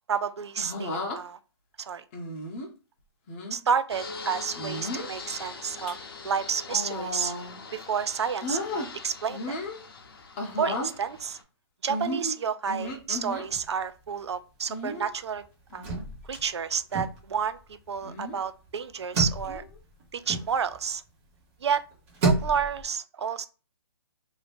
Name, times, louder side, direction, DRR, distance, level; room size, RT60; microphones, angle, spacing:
voice 1, 0.1-1.4 1.8-2.1 3.5-6.0 6.2-7.3 7.7-9.6 10.6-11.4 11.8-15.4 15.7-15.9 16.2-19.6 20.1-21.0 21.6-21.8 22.2-23.5, right 7 dB, 85° right, 0.5 m, -30 dB
sound 1, 0.6-1.2 2.1-2.7 3.3-3.5 4.5-5.1 5.6-5.9 6.6-7.6 7.9-8.9 9.3-9.8 10.4-10.9 11.9-13.5 14.7-15.1 15.7-16.1 16.3-16.4 18.0-18.4 19.5-19.8, left 1 dB, 30° left, 0.8 m, -34 dB
Fixed-wing aircraft airplane, 3.9-11.4, left 4 dB, 60° left, 0.8 m, -42 dB
sound 2, 12.8-14.1 14.3-14.4 14.7-21.1 21.6-22.8, right 3 dB, 30° right, 1.3 m, -31 dB
2.8 x 2.8 x 3.4 m
hypercardioid pair, 155°, 14 cm